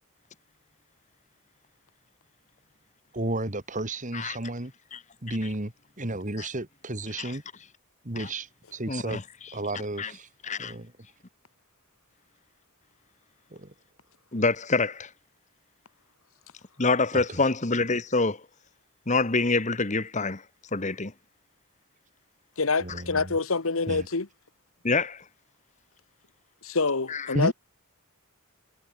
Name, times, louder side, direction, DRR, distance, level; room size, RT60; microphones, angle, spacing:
voice 1, 3.1-4.7 5.2-7.4 8.0-9.2 9.5-10.3 10.6-10.9 13.5-13.7 17.1-17.4 22.8-23.3 23.9-24.1 27.3-27.5, right 1 dB, 35° right, 2.2 m, -32 dB
voice 2, 8.9-9.2 10.0-10.1 10.4-10.7 14.3-15.1 16.8-18.4 19.1-20.4 20.7-21.1 24.8-25.2 27.1-27.3, left 3 dB, 35° left, 1.4 m, -26 dB
voice 3, 22.6-24.3 26.6-27.5, left 4 dB, 70° left, 1.3 m, -26 dB
head